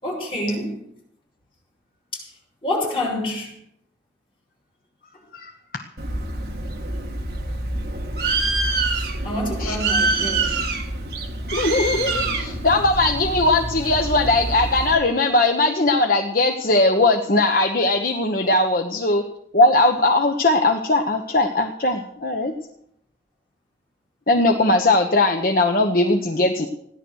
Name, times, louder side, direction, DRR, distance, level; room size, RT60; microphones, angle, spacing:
voice 1, 0.0-0.8 2.1-2.2 2.6-3.5 9.2-10.5, left 1 dB, 30° left, 6.6 m, -27 dB
voice 2, 5.3-5.8 9.6-9.7 11.5-19.2 19.5-22.5 24.3-26.7, left 2 dB, 50° left, 1.1 m, -19 dB
Bird, 6.0-14.9, right 2 dB, 55° right, 1.8 m, -26 dB
16.5 x 11.0 x 6.4 m
head